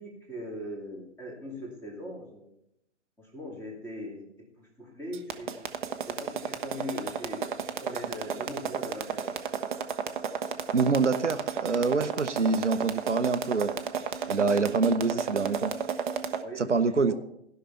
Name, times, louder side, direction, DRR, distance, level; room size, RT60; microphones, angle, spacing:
voice 1, 0.0-2.5 3.2-4.3 4.6-5.6 6.0-9.3 12.0-12.1 16.4-17.1, left 1 dB, 5° left, -1 dB, 2.3 m, -40 dB
sound 1, 5.1-16.4, right 7 dB, 45° right, 0.9 m, -32 dB
voice 2, 10.7-13.7 14.3-15.7 16.6-17.1, right 4 dB, 85° right, 11 dB, 0.9 m, -26 dB
15.5 x 5.8 x 5.6 m, 0.78 s
figure-of-eight pair, 125°, 35 cm